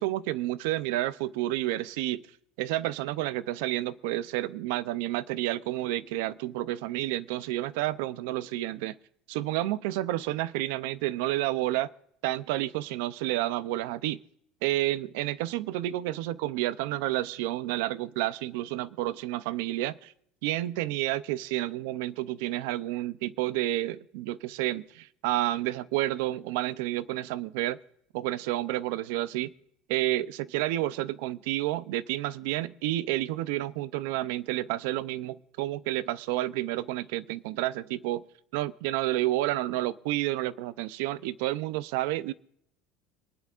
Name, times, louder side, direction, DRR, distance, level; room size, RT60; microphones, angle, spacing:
voice 1, 0.0-2.3 2.6-9.0 9.3-11.9 12.2-14.2 14.6-20.1 20.4-27.8 28.1-29.5 29.9-38.2 38.5-42.3, right 15 dB, 85° right, 0.5 m, -30 dB
26.5 x 10.5 x 2.5 m
cardioid pair, 155°, 0 cm